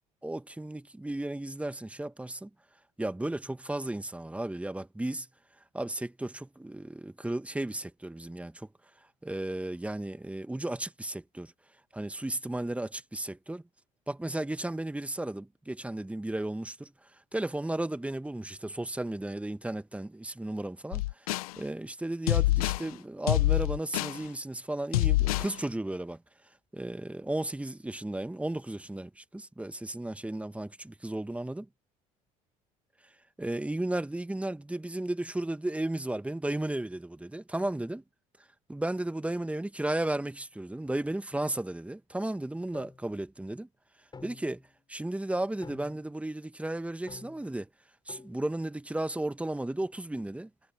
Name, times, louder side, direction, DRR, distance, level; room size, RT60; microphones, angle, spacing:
voice 1, 0.2-2.5 3.0-5.3 5.7-8.7 9.2-11.5 11.9-13.6 14.1-16.9 17.3-21.0 21.6-26.2 26.7-31.7 33.4-38.0 38.7-43.7 44.2-44.6 44.9-47.7 48.1-50.5, right 1 dB, 5° right, 1.4 m, -34 dB
sound 1, 20.9-21.5 22.3-22.9 23.3-24.2 24.9-25.5, left 17 dB, 80° left, 0.7 m, -26 dB
sound 2, 42.7-43.1 44.1-44.7 45.6-46.2 47.1-47.6 48.1-48.4, left 4 dB, 25° left, 3.8 m, -49 dB
hypercardioid pair, 70°, 18 cm